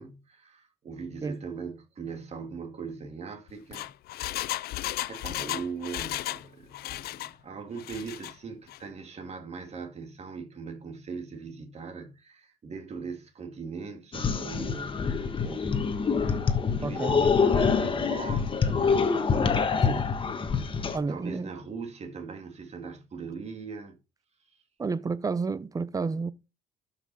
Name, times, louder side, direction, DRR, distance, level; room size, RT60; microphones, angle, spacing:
voice 1, 0.0-4.6 5.1-19.9 20.4-24.0 24.4-24.5, right 5 dB, 40° right, 2.3 m, -40 dB
Engine, 3.5-6.5 6.7-7.3 7.8-8.3 8.7-8.8, left 15 dB, 65° left, 0.5 m, -34 dB
sound 1, 14.1-21.0, left 5 dB, 30° left, 1.4 m, -26 dB
voice 2, 16.8-17.3 19.8-20.1 20.9-21.5 24.8-26.3, right 4 dB, 20° right, 0.7 m, -31 dB
12.5 x 5.9 x 4.1 m
cardioid pair, 110°, 17 cm